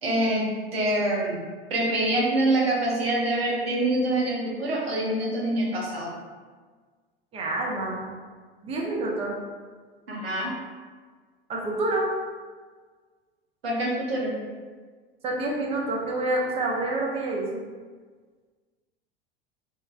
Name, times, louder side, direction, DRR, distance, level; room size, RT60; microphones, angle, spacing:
voice 1, 0.0-1.4 1.7-6.2 10.1-10.6 13.6-14.4, right 1 dB, 75° right, -3 dB, 0.8 m, -25 dB
voice 2, 7.3-8.1 8.6-9.4 11.5-12.1 15.2-17.6, right 2 dB, 20° right, -2 dB, 0.5 m, -27 dB
3.2 x 2.2 x 2.3 m, 1.5 s
figure-of-eight pair, 80°, 30 cm